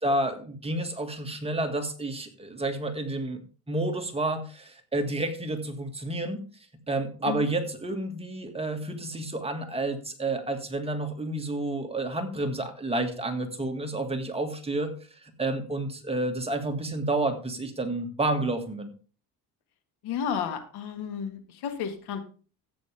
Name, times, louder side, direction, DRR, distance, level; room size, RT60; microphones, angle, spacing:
voice 1, 0.0-3.4 3.7-6.4 6.9-18.9, right 2 dB, 15° right, 4 dB, 1.9 m, -30 dB
voice 2, 20.0-22.2, left 7 dB, 80° left, 8 dB, 1.9 m, -32 dB
13.5 x 8.8 x 3.5 m, 0.38 s
cardioid pair, 115°, 38 cm